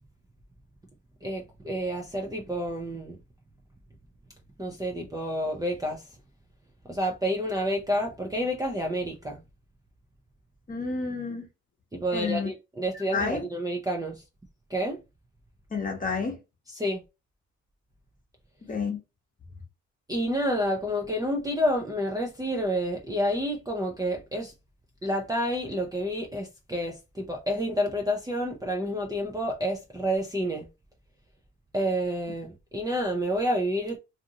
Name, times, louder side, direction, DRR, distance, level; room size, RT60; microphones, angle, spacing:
voice 1, 1.2-3.2 4.6-6.0 6.9-9.4 11.9-14.2 14.7-15.0 16.8-17.0 20.1-24.5 25.0-30.7 31.7-34.0, equal, 10° right, 0.5 m, -29 dB
voice 2, 10.7-11.5 12.1-12.5 13.1-13.4 15.7-16.4 18.6-19.0, left 4 dB, 25° left, 1.0 m, -30 dB
2.6 x 2.5 x 2.7 m
cardioid pair, 90°, 30 cm